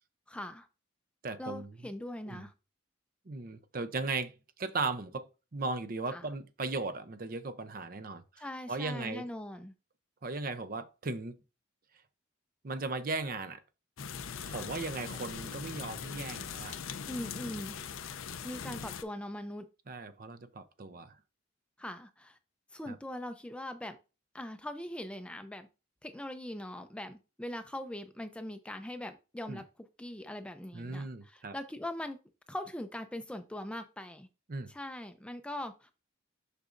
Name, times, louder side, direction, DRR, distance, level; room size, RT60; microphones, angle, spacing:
voice 1, 0.3-0.7 1.4-2.5 6.1-6.3 8.4-9.7 14.4-14.8 17.1-17.8 18.4-19.6 21.8-22.4 22.7-24.0 24.3-25.7 26.0-29.6 30.0-32.2 32.5-34.3 34.7-35.9, left 1 dB, 5° left, 0.4 m, -41 dB
voice 2, 1.2-1.7 2.3-2.4 3.3-9.3 10.2-11.4 12.6-13.6 14.4-16.7 17.4-17.8 19.9-21.2 22.9-23.0 29.5-29.6 30.7-31.5 34.5-34.7, right 3 dB, 45° right, 0.6 m, -37 dB
sound 1, 14.0-19.0, left 7 dB, 85° left, 0.6 m, -41 dB
6.6 x 6.2 x 2.5 m
head